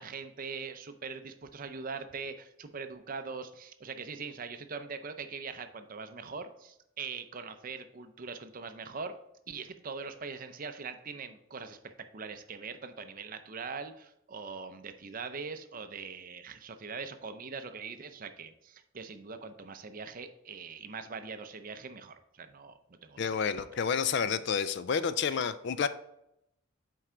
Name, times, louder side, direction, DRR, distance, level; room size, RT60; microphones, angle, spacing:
voice 1, 0.0-9.2 9.5-11.8 12.1-23.5 25.3-25.4, right 5 dB, 40° right, 9 dB, 0.6 m, -42 dB
voice 2, 23.2-25.9, left 6 dB, 55° left, 13 dB, 0.4 m, -30 dB
7.6 x 4.6 x 3.8 m, 0.80 s
head